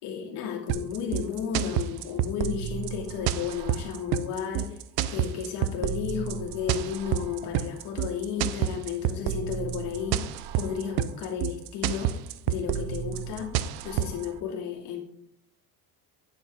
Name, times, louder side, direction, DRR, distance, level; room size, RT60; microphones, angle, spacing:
voice 1, 0.0-4.8 5.1-10.2 10.5-12.1 12.5-13.5 13.8-15.0, left 8 dB, 80° left, -1 dB, 2.7 m, -33 dB
sound 1, 0.7-14.3, right 11 dB, 65° right, 0.7 m, -29 dB
10.0 x 5.5 x 5.4 m, 0.70 s
cardioid pair, 150°, 41 cm